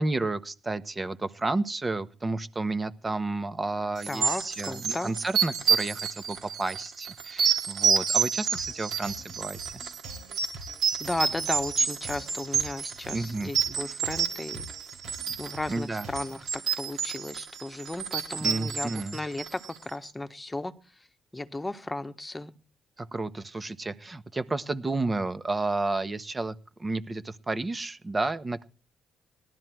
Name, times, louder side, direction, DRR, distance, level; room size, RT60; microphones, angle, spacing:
voice 1, 0.0-9.6 13.1-13.5 15.7-16.1 18.4-19.2 23.0-28.7, right 2 dB, 25° right, 12 dB, 1.4 m, -31 dB
sound 1, 4.0-19.8, right 7 dB, 65° right, 2.8 m, -29 dB
voice 2, 4.1-5.1 11.0-14.7 15.4-20.7 21.3-22.5, left 2 dB, 15° left, 8 dB, 1.6 m, -35 dB
sound 2, 8.5-16.5, right 1 dB, 85° right, 4.1 m, -46 dB
18.0 x 12.5 x 4.6 m, 0.34 s
cardioid pair, 90°, 0 cm